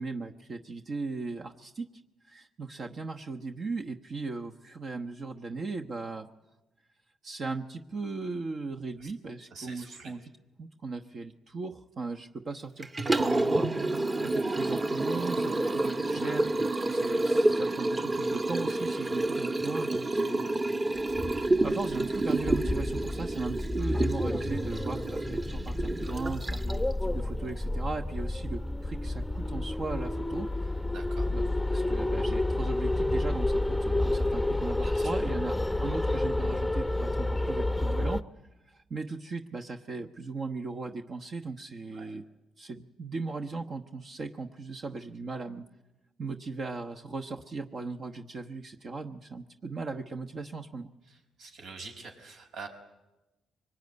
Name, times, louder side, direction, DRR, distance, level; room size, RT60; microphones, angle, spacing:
voice 1, 0.0-1.9 2.2-6.3 7.2-10.3 10.6-20.4 21.6-30.7 31.3-38.2 38.7-42.2 42.6-45.7 46.2-50.9, right 3 dB, 45° right, 4 dB, 1.0 m, -38 dB
voice 2, 9.5-10.1 30.9-31.3 34.8-35.1 41.9-42.1 51.4-52.7, right 4 dB, 80° right, 3 dB, 5.0 m, -45 dB
Liquid, 12.8-26.9, right 2 dB, 25° right, 1.3 m, -29 dB
sound 1, 21.0-38.2, left 1 dB, 5° left, 0.8 m, -30 dB
23.5 x 21.0 x 9.6 m, 1.0 s
cardioid pair, 90°, 0 cm